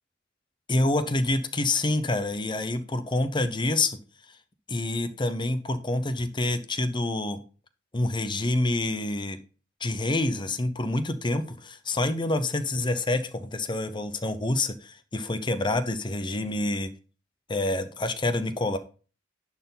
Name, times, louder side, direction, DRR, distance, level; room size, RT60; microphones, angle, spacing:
voice 1, 0.7-4.0 4.7-7.4 7.9-9.4 9.8-16.9 17.5-18.8, left 2 dB, 25° left, 11 dB, 0.8 m, -27 dB
10.5 x 4.4 x 4.0 m, 0.36 s
head